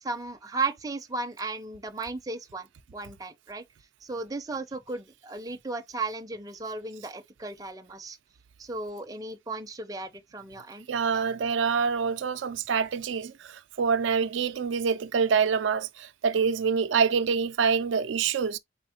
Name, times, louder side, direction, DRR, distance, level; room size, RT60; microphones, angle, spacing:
voice 1, 0.0-3.6 4.0-8.2 8.6-10.9 11.1-11.2, right 3 dB, 20° right, 0.5 m, -35 dB
voice 2, 10.9-18.6, right 6 dB, 85° right, 0.4 m, -26 dB
4.3 x 4.0 x 2.7 m
head